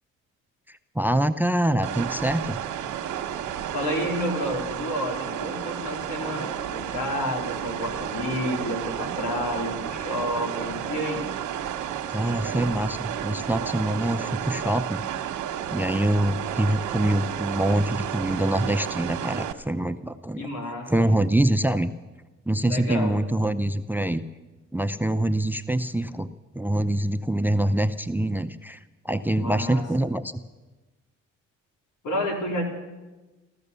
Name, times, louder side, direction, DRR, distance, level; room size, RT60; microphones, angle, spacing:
voice 1, 1.0-2.6 12.1-15.0 15.7-20.5 20.9-21.9 22.5-24.2 24.7-26.3 26.5-28.8 29.0-30.4, right 1 dB, 5° right, 13 dB, 0.6 m, -25 dB
sound 1, 1.8-19.5, right 10 dB, 75° right, 1.1 m, -32 dB
voice 2, 3.7-11.3 20.4-21.2 22.6-23.2 29.3-30.1 32.0-32.8, equal, 80° left, 1 dB, 3.8 m, -30 dB
15.0 x 14.0 x 6.8 m, 1.2 s
cardioid pair, 90°, 30 cm